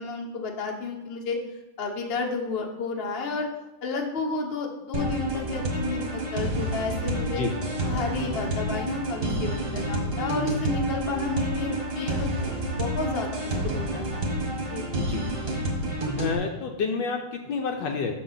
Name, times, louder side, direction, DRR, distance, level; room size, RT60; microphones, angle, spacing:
voice 1, 0.0-1.4 1.8-3.5 3.8-7.4 7.9-14.3 14.7-14.9, left 3 dB, 45° left, 1 dB, 0.8 m, -31 dB
sound 1, 4.9-16.4, right 1 dB, 35° right, 1.2 m, -29 dB
voice 2, 7.3-7.7 15.0-15.3 16.2-18.1, left 5 dB, 70° left, 3 dB, 1.2 m, -29 dB
6.6 x 5.9 x 4.0 m, 1.0 s
omnidirectional pair, 2.3 m